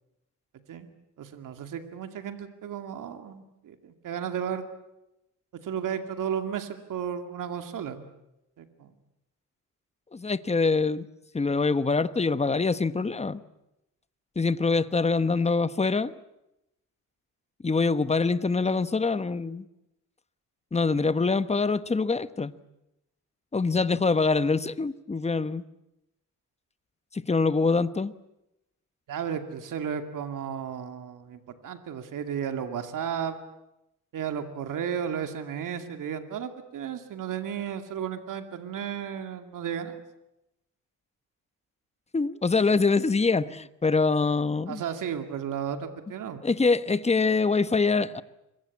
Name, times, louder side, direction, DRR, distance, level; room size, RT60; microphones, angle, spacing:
voice 1, 1.2-4.7 5.6-8.0 8.6-8.9 29.1-33.4 34.1-40.0 44.7-46.4, right 8 dB, 80° right, 7 dB, 2.4 m, -34 dB
voice 2, 10.1-11.0 11.3-13.4 14.4-16.1 17.6-19.6 20.7-22.5 23.5-25.6 27.1-28.1 42.1-44.8 46.4-48.2, left 4 dB, 20° left, 14 dB, 1.1 m, -24 dB
26.5 x 23.0 x 8.5 m, 0.90 s
cardioid pair, 105°, 32 cm